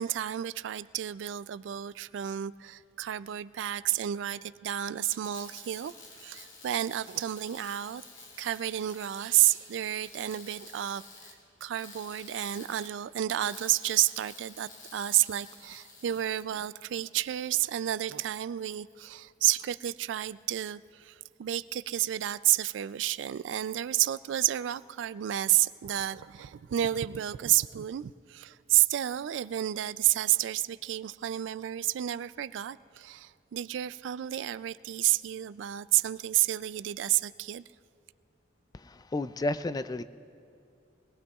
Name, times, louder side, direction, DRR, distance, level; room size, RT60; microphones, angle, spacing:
voice 1, 0.0-5.9 6.2-8.0 8.4-11.3 11.6-37.6, right 13 dB, 75° right, 16 dB, 0.3 m, -30 dB
sound 1, 5.0-16.4, left 3 dB, 85° left, 2.2 m, -50 dB
voice 2, 38.7-40.0, left 2 dB, 20° left, 13 dB, 0.3 m, -32 dB
23.5 x 18.0 x 2.4 m, 2.5 s
head